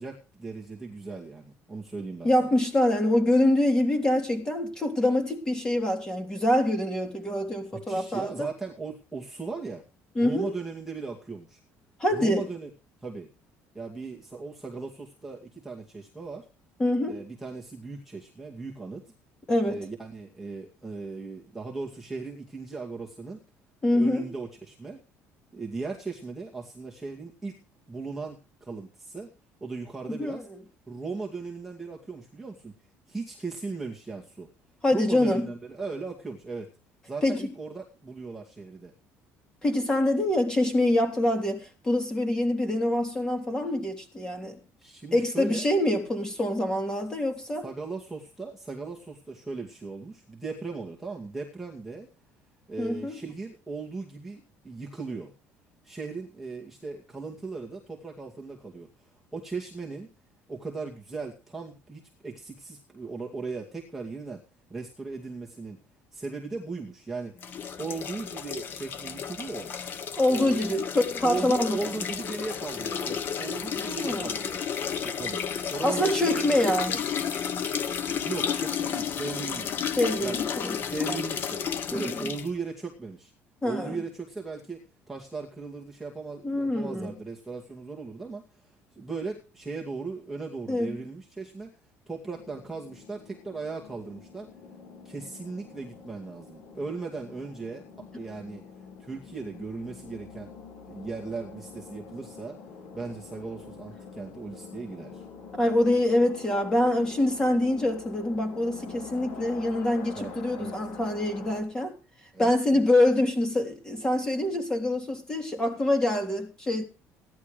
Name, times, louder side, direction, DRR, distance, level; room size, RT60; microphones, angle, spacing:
voice 1, 0.0-2.3 7.9-9.8 10.2-11.6 12.1-12.7 13.0-13.3 13.7-16.5 17.1-19.0 19.6-23.4 23.9-25.0 25.5-27.6 27.9-29.3 29.6-30.5 30.9-32.7 33.1-34.5 34.9-36.7 37.0-38.9 44.8-45.6 47.6-52.1 52.7-55.3 55.8-60.1 60.5-64.4 64.7-65.8 66.1-67.3 67.8-69.7 70.3-70.6 71.2-74.7 75.0-75.4 75.7-76.4 78.0-79.7 80.2-80.4 80.8-83.3 83.6-84.8 85.1-91.8 92.1-94.5 95.0-98.6 99.0-100.5 100.9-102.6 102.9-105.3 110.1-110.8 112.3-112.8, right 4 dB, 5° right, 2.2 m, -37 dB
voice 2, 2.2-8.5 10.1-10.5 12.0-12.5 16.8-17.1 19.5-19.8 23.8-24.3 30.1-30.4 34.8-35.5 37.2-37.5 39.6-44.6 45.1-47.7 52.8-53.2 70.2-71.8 73.8-74.3 75.8-77.0 80.0-80.8 81.9-82.3 83.6-84.0 86.4-87.2 90.7-91.0 105.5-111.9 112.4-116.8, left 1 dB, 15° left, 3.4 m, -25 dB
sound 1, 67.4-82.5, left 7 dB, 40° left, 1.3 m, -32 dB
sound 2, 92.3-111.6, left 5 dB, 60° left, 6.9 m, -46 dB
17.0 x 11.0 x 5.0 m
cardioid pair, 175°, 6 cm